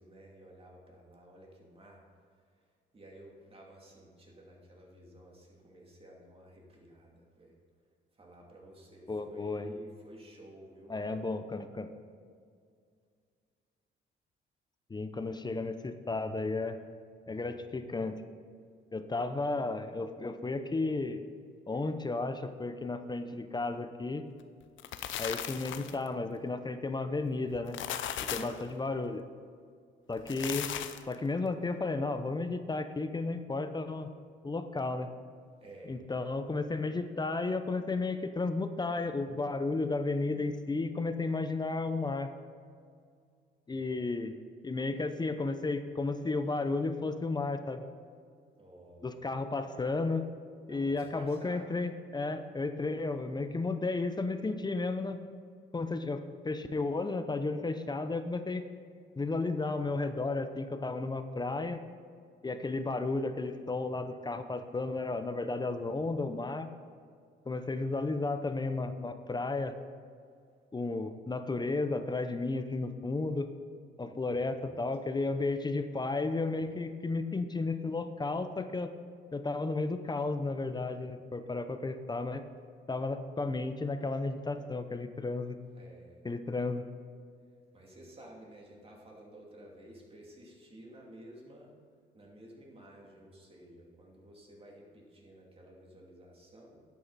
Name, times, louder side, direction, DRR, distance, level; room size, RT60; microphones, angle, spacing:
voice 1, 0.0-2.0 2.9-7.6 8.1-11.0 28.3-28.7 35.6-36.1 43.7-44.0 48.6-49.2 50.7-51.7 65.7-66.0 74.0-74.8 85.7-86.2 87.7-91.7 92.1-96.8, right 1 dB, 30° right, -2 dB, 2.7 m, -53 dB
voice 2, 9.1-9.7 10.9-11.9 14.9-16.8 17.3-18.2 18.9-21.2 21.7-24.3 25.2-27.8 28.2-29.2 30.1-30.7 31.1-34.1 34.4-35.1 35.9-42.3 43.7-44.3 44.6-47.9 49.0-50.3 50.7-55.2 55.7-56.2 56.4-58.6 59.2-61.8 62.4-66.7 67.5-69.7 70.7-73.5 74.0-78.9 79.3-82.4 82.9-85.6 86.2-86.8, left 3 dB, 20° left, 9 dB, 0.7 m, -33 dB
sound 1, 24.6-26.1 27.5-28.6 30.1-31.1, left 10 dB, 75° left, 0.7 m, -37 dB
11.0 x 8.5 x 4.2 m, 2.2 s
cardioid pair, 90°, 20 cm